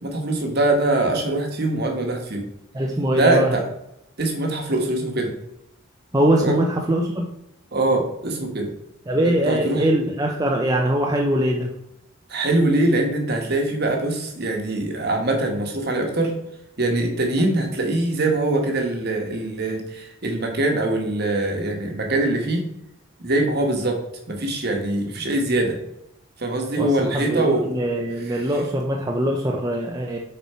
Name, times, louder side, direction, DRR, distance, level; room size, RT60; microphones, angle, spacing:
voice 1, 0.0-2.5 3.1-3.6 4.2-5.3 6.4-6.6 7.7-8.7 9.2-9.9 12.3-16.3 16.8-22.6 23.2-24.0 24.3-25.8 26.4-27.7 28.3-28.4, right 2 dB, 50° right, 3 dB, 1.3 m, -23 dB
voice 2, 2.7-3.5 6.1-7.3 9.1-11.7 26.8-30.2, right 1 dB, 15° right, 0 dB, 0.5 m, -22 dB
7.0 x 4.4 x 4.3 m, 0.81 s
head